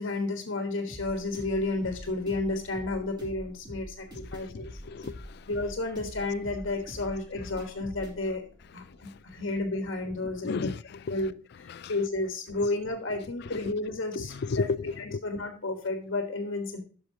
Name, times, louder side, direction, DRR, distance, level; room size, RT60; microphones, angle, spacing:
voice 1, 0.0-4.7 5.5-8.4 8.7-10.7 11.1-11.3 11.6-16.8, left 2 dB, 75° left, 1.3 m, -32 dB
sound 1, 0.9-10.5, equal, 20° right, 2.7 m, -45 dB
voice 2, 4.5-5.4 10.4-11.0 11.7-11.9 13.5-13.7 14.2-15.2, left 4 dB, 55° left, 0.4 m, -33 dB
12.0 x 6.3 x 2.8 m
head